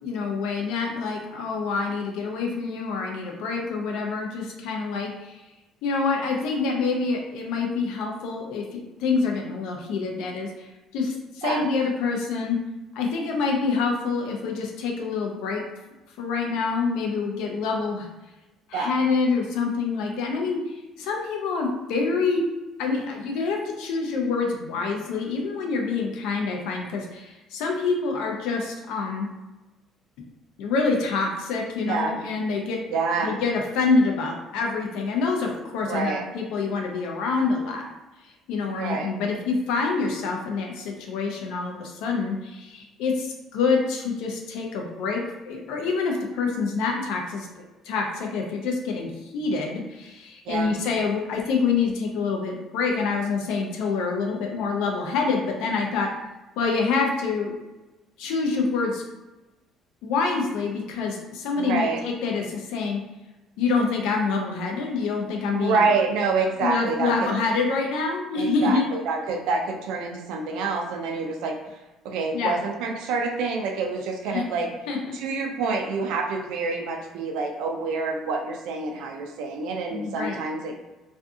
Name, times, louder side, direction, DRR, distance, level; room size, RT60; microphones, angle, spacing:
voice 1, 0.0-5.4 5.8-12.6 12.9-15.6 16.2-18.1 18.7-22.4 22.8-29.3 30.6-32.8 33.2-37.9 38.2-47.5 47.8-56.1 56.6-57.6 58.2-59.0 60.0-63.0 63.6-65.9 66.6-68.9 72.3-72.5 74.3-74.4 74.9-75.2 79.9-80.4, left 4 dB, 85° left, 1 dB, 0.4 m, -26 dB
voice 2, 31.9-32.2 32.9-33.3 35.9-36.2 38.8-39.1 50.5-50.7 61.6-62.0 65.5-67.3 68.3-71.8 72.0-74.7 75.1-80.9, right 4 dB, 75° right, 2 dB, 0.4 m, -27 dB
2.6 x 2.5 x 2.3 m, 1.1 s
cardioid pair, 175°, 0 cm